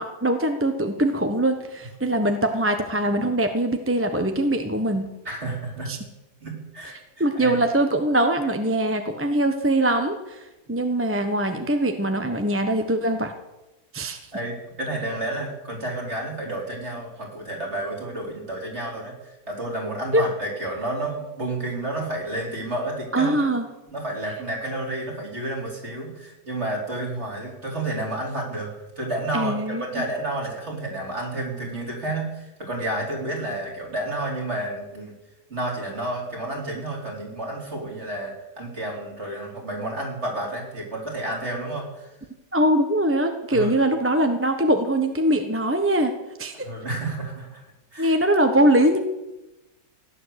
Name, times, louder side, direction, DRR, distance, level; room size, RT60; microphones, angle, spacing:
voice 1, 0.0-5.1 5.9-6.0 7.2-10.4 10.7-13.3 13.9-14.2 20.1-20.2 23.1-23.7 29.3-30.0 42.5-46.1 46.4-46.7 48.0-49.0, right 1 dB, 10° right, 6 dB, 1.0 m, -22 dB
voice 2, 5.2-5.9 6.4-7.5 14.3-23.4 23.9-28.7 29.0-35.1 35.5-42.1 43.5-43.7 46.6-48.2, right 1 dB, 40° right, -1 dB, 4.5 m, -31 dB
16.5 x 10.5 x 8.2 m, 0.99 s
omnidirectional pair, 1.7 m